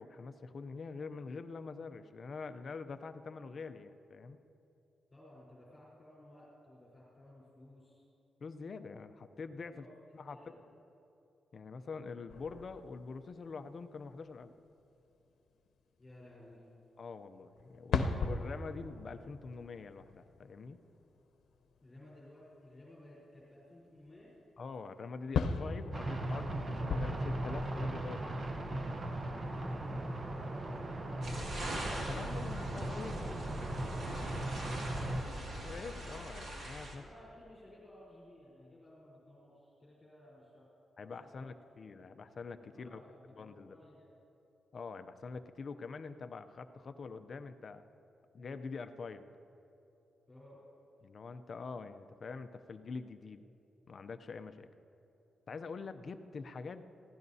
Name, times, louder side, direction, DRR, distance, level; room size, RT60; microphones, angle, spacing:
voice 1, 0.0-4.4 8.4-9.8 10.1-10.4 11.5-14.5 17.0-20.8 24.6-28.2 31.8-33.4 35.6-37.0 41.0-43.0 43.4-43.8 44.7-47.8 48.3-49.3 51.0-53.4 53.9-54.7 55.5-56.8, left 4 dB, 40° left, 9 dB, 0.5 m, -45 dB
voice 2, 5.1-8.1 9.7-10.6 16.0-16.6 21.8-24.3 29.6-30.9 34.1-35.5 37.0-40.7 41.2-41.6 42.7-44.1 50.3-50.6, left 1 dB, 15° left, -8 dB, 3.8 m, -56 dB
sound 1, 12.3-13.5 14.3-14.4 15.2-15.3 15.7-15.8 17.6-21.8 23.4-23.5 24.0-24.1 25.3-28.6, left 5 dB, 85° left, 0.8 m, -38 dB
sound 2, 25.9-35.2, right 1 dB, 25° right, 0.8 m, -38 dB
sound 3, 31.2-36.9, right 1 dB, 50° right, 2.2 m, -42 dB
23.0 x 16.0 x 2.8 m, 2.9 s
wide cardioid pair, 175°, 0 cm